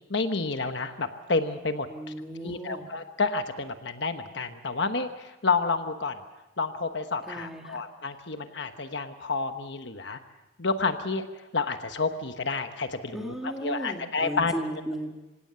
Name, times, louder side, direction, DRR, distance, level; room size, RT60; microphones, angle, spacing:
voice 1, 0.1-1.9 2.4-6.2 6.6-10.2 10.6-14.5, left 4 dB, 55° left, 7 dB, 1.2 m, -30 dB
voice 2, 1.9-2.9 7.3-7.8 13.1-15.2, right 1 dB, ahead, 2 dB, 2.2 m, -35 dB
27.0 x 17.0 x 6.9 m, 1.1 s
head